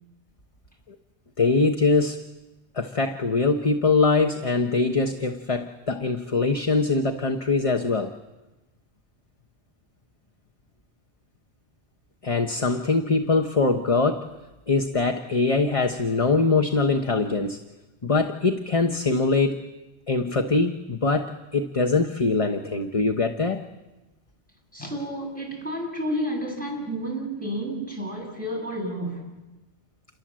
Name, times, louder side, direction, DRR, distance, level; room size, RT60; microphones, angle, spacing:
voice 1, 1.4-2.3 2.7-8.1 12.2-14.3 14.7-17.6 18.0-19.7 20.1-23.6, left 3 dB, 30° left, 1.1 m, -23 dB
voice 2, 24.7-29.3, equal, 5° left, 7.8 m, -31 dB
29.0 x 23.0 x 7.6 m
omnidirectional pair, 1.2 m